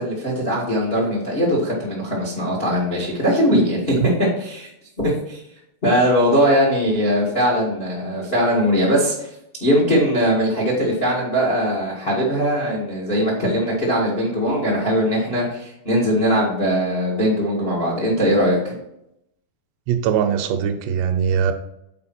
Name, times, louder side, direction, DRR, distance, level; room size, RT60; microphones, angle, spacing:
voice 1, 0.0-4.7 5.0-5.4 5.8-9.3 9.6-18.7, equal, 80° left, -4 dB, 0.5 m, -20 dB
voice 2, 19.9-21.5, right 7 dB, 80° right, 7 dB, 2.7 m, -21 dB
7.5 x 4.5 x 4.2 m, 0.80 s
omnidirectional pair, 5.1 m